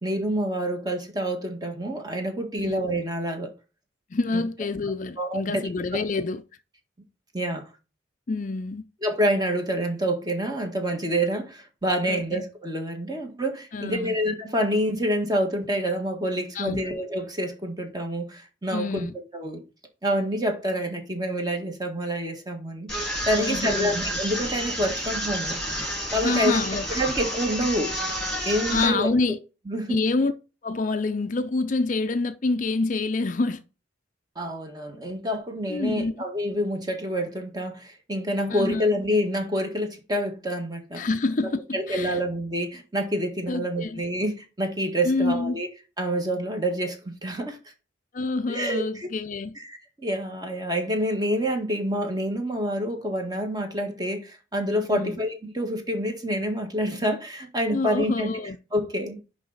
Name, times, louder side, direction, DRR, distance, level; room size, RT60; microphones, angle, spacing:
voice 1, 0.0-3.5 4.3-4.4 5.2-5.6 5.9-6.0 7.3-7.6 9.0-19.1 19.3-19.6 20.0-25.6 26.1-26.6 26.9-28.0 28.5-29.1 29.7-30.0 34.4-41.0 41.7-45.7 46.0-47.6 48.5-49.1 49.6-58.3 58.7-59.2, equal, 20° right, 1.7 m, -27 dB
voice 2, 4.1-6.4 8.3-8.8 12.1-12.2 13.7-14.2 16.5-16.8 18.7-19.1 23.4-23.9 26.2-26.9 28.7-29.4 29.9-30.3 30.6-33.6 35.7-36.2 38.5-38.8 41.0-42.2 43.5-44.0 45.0-45.6 48.1-49.6 54.9-55.2 57.7-58.6, left 3 dB, 40° left, 0.5 m, -27 dB
sound 1, 22.9-28.9, equal, 5° left, 3.6 m, -30 dB
10.5 x 3.9 x 4.0 m
head